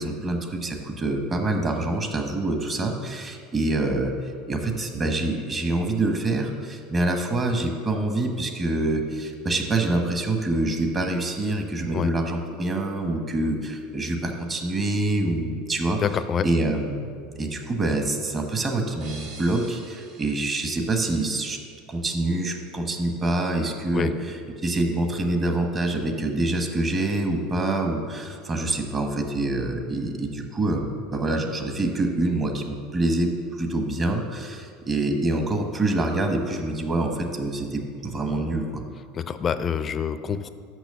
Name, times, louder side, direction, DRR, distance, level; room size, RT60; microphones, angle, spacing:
voice 1, 0.0-4.1 4.5-16.0 16.4-17.1 17.3-21.6 21.9-24.1 24.6-38.8, right 2 dB, 30° right, 4 dB, 1.2 m, -26 dB
voice 2, 16.0-16.5 23.9-24.1 39.1-40.5, left 7 dB, 35° left, 12 dB, 0.4 m, -26 dB
sound 1, 19.0-21.8, right 3 dB, 70° right, 1.9 m, -46 dB
6.2 x 6.0 x 6.8 m, 2.2 s
hypercardioid pair, 85°, 0 cm